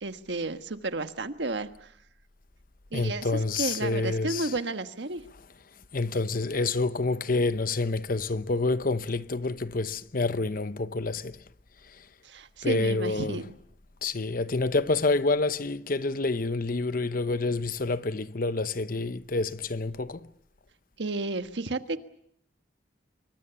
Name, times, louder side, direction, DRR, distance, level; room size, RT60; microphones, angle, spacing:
voice 1, 0.0-1.9 2.9-3.3 3.6-5.2 12.2-13.5 21.0-22.0, right 2 dB, 75° right, 1.4 m, -32 dB
voice 2, 2.9-4.5 5.9-11.4 11.8-12.0 12.6-13.4 14.0-20.3, left 3 dB, 50° left, 0.9 m, -28 dB
27.0 x 24.0 x 6.9 m
head